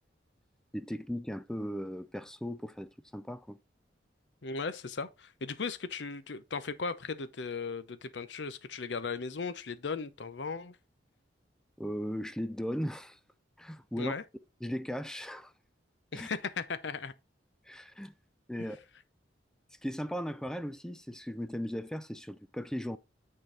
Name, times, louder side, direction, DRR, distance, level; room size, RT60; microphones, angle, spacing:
voice 1, 0.7-3.6 11.8-13.2 13.6-14.2 14.6-15.5 16.1-16.3 17.6-18.1 18.5-18.8 19.8-23.0, equal, 5° left, 0.3 m, -37 dB
voice 2, 4.4-10.8 14.0-14.2 16.1-17.1, left 4 dB, 70° left, 0.7 m, -37 dB
9.1 x 3.8 x 3.8 m
head